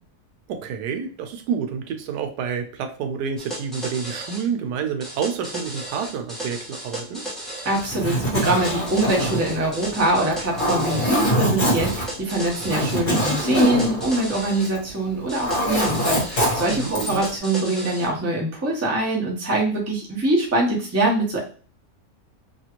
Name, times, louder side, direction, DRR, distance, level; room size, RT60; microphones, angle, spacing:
voice 1, 0.5-7.2 16.7-17.2, right 6 dB, 85° right, 6 dB, 1.2 m, -29 dB
sound 1, 3.4-4.4 5.0-7.9 8.4-11.3 11.9-14.7 15.3-18.1, right 1 dB, ahead, 0.9 m, -35 dB
voice 2, 7.6-21.4, right 2 dB, 20° right, -2 dB, 0.4 m, -23 dB
Zipper (clothing), 7.8-14.9 15.2-17.3, equal, 35° left, 1.3 m, -24 dB
3.0 x 2.4 x 2.9 m, 0.38 s
omnidirectional pair, 1.7 m